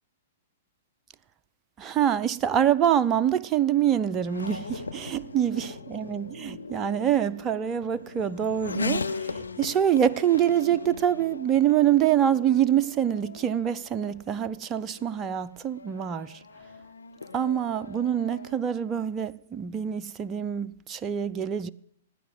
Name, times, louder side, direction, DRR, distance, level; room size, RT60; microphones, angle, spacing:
voice 1, 1.8-16.4 17.3-21.7, right 10 dB, 25° right, 0.5 m, -25 dB
Race car auto racing / Accelerating revving vroom, 2.4-18.6, left 3 dB, 75° left, 0.8 m, -39 dB
18.0 x 9.8 x 7.7 m
figure-of-eight pair, 110°, 0 cm